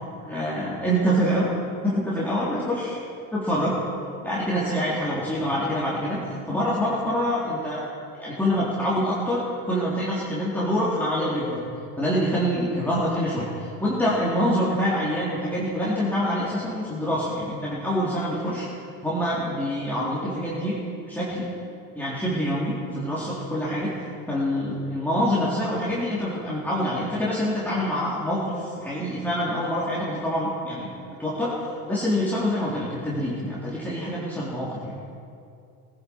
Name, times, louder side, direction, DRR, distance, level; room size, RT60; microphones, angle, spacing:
voice 1, 0.2-1.5 1.8-3.0 3.3-3.7 4.2-7.9 8.2-11.6 12.0-18.7 19.0-20.8 21.0-21.5 21.9-30.9 31.2-34.8, equal, 5° left, -8 dB, 3.7 m, -26 dB
20.0 x 10.5 x 4.7 m, 2.5 s
hypercardioid pair, 70°, 41 cm